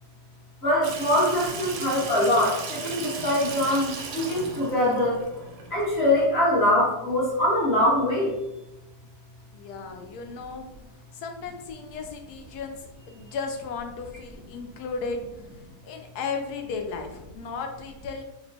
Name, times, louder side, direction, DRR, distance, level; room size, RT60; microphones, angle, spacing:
voice 1, 0.6-5.5 5.7-8.3, left 1 dB, 45° left, -6 dB, 1.0 m, -23 dB
Water tap faucet / Sink (filling or washing), 0.8-6.2, right 4 dB, 70° right, 0.9 m, -37 dB
voice 2, 9.5-10.7 11.1-15.3 15.8-18.2, left 4 dB, 75° left, 4 dB, 1.0 m, -35 dB
3.0 x 2.1 x 3.9 m, 0.93 s
omnidirectional pair, 1.8 m